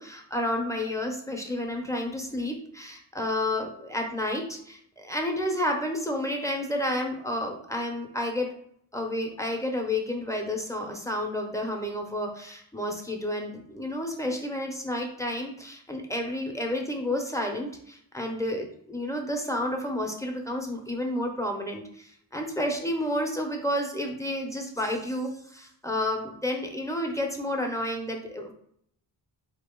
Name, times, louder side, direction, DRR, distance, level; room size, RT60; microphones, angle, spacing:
voice 1, 0.0-8.5 8.9-28.5, left 1 dB, 5° left, 1 dB, 0.7 m, -30 dB
4.3 x 2.9 x 3.7 m, 0.67 s
wide cardioid pair, 115°, 45 cm